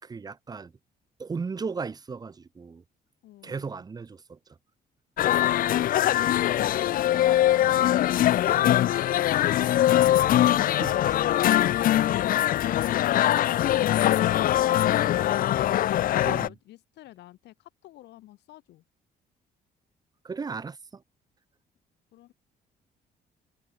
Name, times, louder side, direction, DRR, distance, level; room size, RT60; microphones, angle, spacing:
voice 1, 0.0-0.7 1.2-2.8 3.4-4.4 10.7-11.2 16.2-16.5 20.2-21.0, right 5 dB, 20° right, 3.4 m, -36 dB
voice 2, 3.2-3.8 16.1-18.8 22.1-22.3, left 15 dB, 90° left, 3.6 m, -49 dB
sound 1, 5.2-16.5, left 13 dB, 55° left, 0.8 m, -22 dB
cardioid pair, 165°, 17 cm